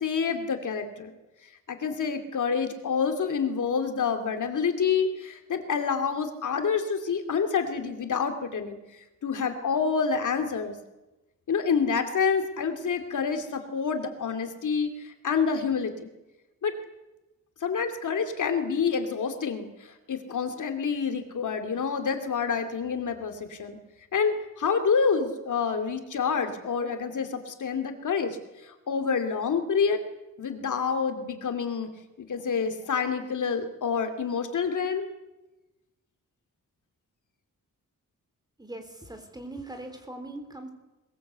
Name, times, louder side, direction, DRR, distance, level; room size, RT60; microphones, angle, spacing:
voice 1, 0.0-1.1 1.7-8.8 9.2-10.8 11.5-16.1 16.6-16.7 17.6-19.7 20.1-23.8 24.1-28.4 28.7-30.0 30.4-31.9 32.2-35.1, left 6 dB, 65° left, 7 dB, 2.6 m, -27 dB
voice 2, 38.6-40.7, right 2 dB, 10° right, 6 dB, 3.5 m, -40 dB
21.5 x 21.0 x 8.1 m, 1.0 s
wide cardioid pair, 170°, 33 cm